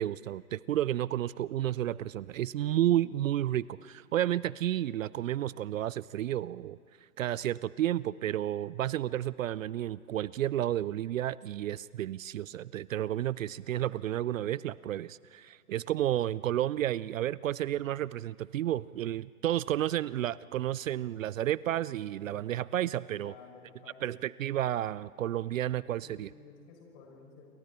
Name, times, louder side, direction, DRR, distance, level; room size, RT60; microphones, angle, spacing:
voice 1, 0.0-6.8 7.2-23.3 24.0-26.3, right 12 dB, 60° right, 20 dB, 0.5 m, -31 dB
voice 2, 23.1-24.3 26.0-27.5, left 5 dB, 35° left, 1 dB, 6.6 m, -53 dB
28.5 x 23.5 x 4.4 m, 2.3 s
figure-of-eight pair, 120°, 45 cm